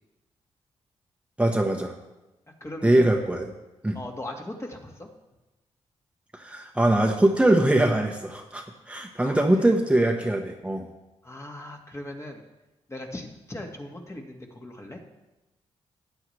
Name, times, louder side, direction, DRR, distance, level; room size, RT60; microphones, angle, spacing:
voice 1, 1.4-1.9 2.8-3.5 3.8-4.0 6.3-10.9, right 1 dB, 10° right, 1 dB, 1.2 m, -22 dB
voice 2, 2.6-3.1 3.9-5.1 9.2-9.7 11.2-12.4 12.9-15.0, left 1 dB, 25° left, 1 dB, 1.9 m, -39 dB
13.5 x 8.9 x 3.3 m, 1.0 s
cardioid pair, 65°, 11 cm